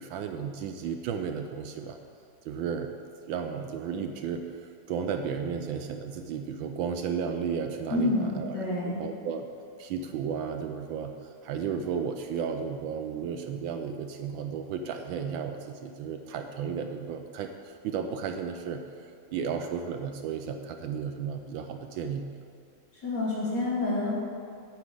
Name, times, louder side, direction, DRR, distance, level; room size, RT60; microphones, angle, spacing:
voice 1, 0.0-2.0 2.5-3.0 3.3-9.5 9.8-22.3, right 6 dB, 75° right, 6 dB, 1.3 m, -34 dB
voice 2, 7.9-9.0 23.0-24.2, left 2 dB, 55° left, -6 dB, 3.1 m, -28 dB
8.6 x 5.8 x 8.1 m, 2.4 s
omnidirectional pair, 2.3 m